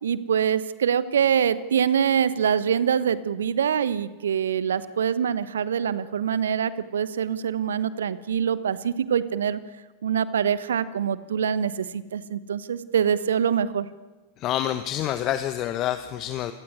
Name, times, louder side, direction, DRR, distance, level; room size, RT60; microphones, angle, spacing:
voice 1, 0.0-9.6 10.0-13.9, right 8 dB, 65° right, 15 dB, 1.2 m, -24 dB
voice 2, 14.4-16.5, left 12 dB, 35° left, 11 dB, 1.2 m, -27 dB
27.0 x 17.5 x 9.5 m, 1.2 s
figure-of-eight pair, 90°, 0 cm